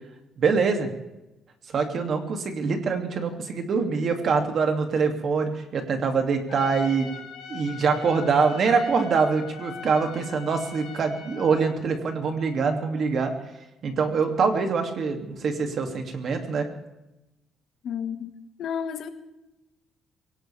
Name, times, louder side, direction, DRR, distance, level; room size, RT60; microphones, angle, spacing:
voice 1, 0.4-0.9 1.7-7.1 7.5-13.3 13.8-16.7, right 5 dB, 45° right, 5 dB, 2.5 m, -24 dB
Trumpet, 6.5-11.7, left 6 dB, 85° left, 5.2 m, -42 dB
voice 2, 17.8-18.3 18.6-19.1, left 8 dB, 60° left, 7 dB, 1.7 m, -31 dB
22.5 x 18.0 x 3.5 m, 0.97 s
cardioid pair, 150°, 0 cm